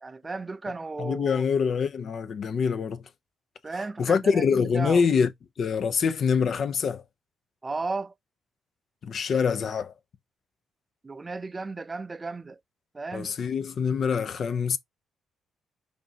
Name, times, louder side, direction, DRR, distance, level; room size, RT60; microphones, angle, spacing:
voice 1, 0.0-1.4 3.6-5.0 7.6-8.1 11.0-12.6 12.9-13.3, right 3 dB, 25° right, 0.4 m, -34 dB
voice 2, 1.0-3.0 4.0-5.3 5.6-7.0 9.0-9.9 13.1-14.8, left 6 dB, 55° left, 0.5 m, -25 dB
5.1 x 2.7 x 2.7 m
cardioid pair, 90°, 0 cm